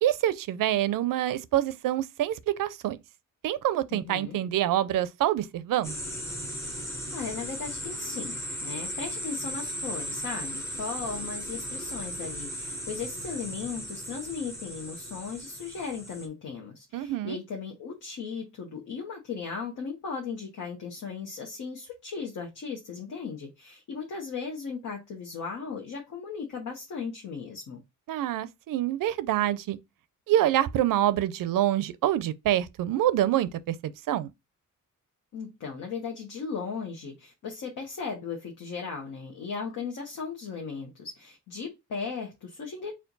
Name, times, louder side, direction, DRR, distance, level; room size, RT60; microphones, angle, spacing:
voice 1, 0.0-3.0 3.4-6.0 16.9-17.4 28.1-29.8 30.3-34.3, right 12 dB, 85° right, 0.5 m, -26 dB
voice 2, 3.9-4.4 7.1-27.8 35.3-42.9, left 5 dB, 65° left, 1.1 m, -37 dB
sound 1, 5.8-16.3, equal, 10° left, 0.7 m, -36 dB
4.4 x 2.4 x 3.9 m
wide cardioid pair, 180°, 32 cm